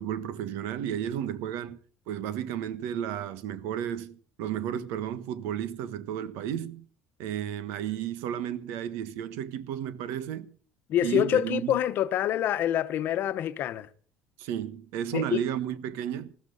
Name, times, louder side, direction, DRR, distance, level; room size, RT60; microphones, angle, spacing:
voice 1, 0.0-1.8 2.1-6.8 7.2-10.5 11.0-11.8 14.4-16.3, right 10 dB, 80° right, 1.3 m, -33 dB
voice 2, 10.9-13.9 15.1-15.4, left 11 dB, 50° left, 1.0 m, -26 dB
20.5 x 14.5 x 4.0 m
cardioid pair, 135°, 4 cm